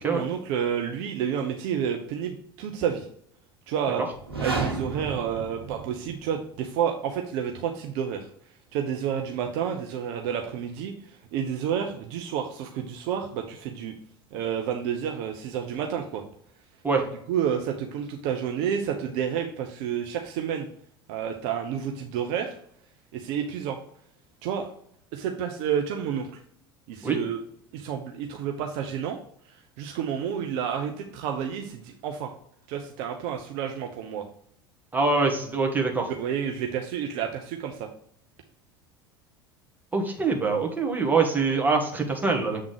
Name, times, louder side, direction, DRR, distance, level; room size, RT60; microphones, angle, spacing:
voice 1, 0.0-3.1 3.7-4.0 4.4-8.3 8.7-10.9 11.3-13.9 14.3-16.2 17.3-20.7 21.1-22.5 23.1-23.8 24.4-24.7 25.1-26.3 26.9-27.4 27.7-29.2 29.8-32.3 32.7-34.2 36.1-37.9, right 8 dB, 55° right, 3 dB, 0.8 m, -30 dB
sound 1, 4.1-6.3, right 3 dB, 85° right, 1.2 m, -32 dB
voice 2, 34.9-36.1 39.9-42.6, right 4 dB, 15° right, 1 dB, 1.8 m, -24 dB
7.6 x 3.6 x 5.0 m, 0.64 s
figure-of-eight pair, 75°, 12 cm